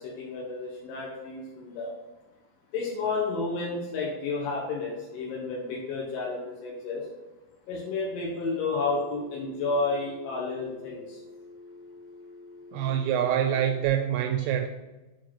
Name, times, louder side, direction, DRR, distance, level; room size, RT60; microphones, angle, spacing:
voice 1, 0.0-1.9 2.7-7.1 7.7-11.2 12.8-12.9, left 3 dB, 80° left, -4 dB, 3.8 m, -31 dB
Telephone, 8.9-13.9, left 2 dB, 55° right, 0.8 m, -48 dB
voice 2, 12.7-14.7, right 10 dB, 85° right, 5 dB, 2.4 m, -25 dB
8.0 x 5.1 x 6.0 m, 1.1 s
omnidirectional pair, 5.3 m